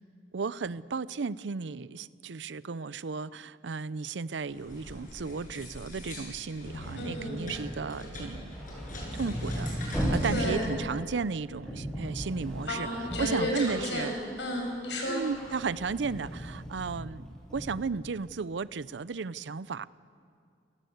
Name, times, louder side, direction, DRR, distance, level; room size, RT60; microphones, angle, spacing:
voice 1, 0.3-8.5 9.1-12.9 13.2-14.1 15.1-17.3 17.5-19.9, right 5 dB, 85° right, 18 dB, 0.5 m, -34 dB
sound 1, 4.5-10.4, equal, 50° left, 8.0 m, -40 dB
voice 2, 7.0-7.5 10.3-10.7 12.7-14.1 14.4-15.3, equal, 80° left, 1 dB, 7.3 m, -32 dB
sound 2, 8.1-14.2 14.6-17.9, equal, 5° left, 7.5 m, -37 dB
27.5 x 18.5 x 8.0 m, 2.3 s
head